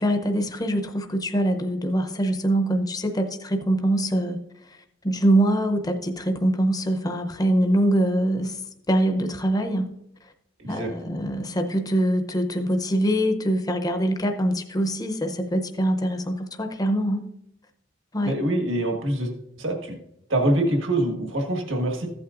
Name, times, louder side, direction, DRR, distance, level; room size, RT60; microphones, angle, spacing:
voice 1, 0.0-4.4 4.7-8.6 8.9-9.9 10.7-17.3 18.1-18.4, right 1 dB, 20° left, 5 dB, 0.7 m, -24 dB
voice 2, 18.2-19.3 19.6-20.0 20.3-22.1, right 1 dB, 80° right, 3 dB, 1.6 m, -24 dB
14.5 x 8.6 x 2.5 m, 0.79 s
head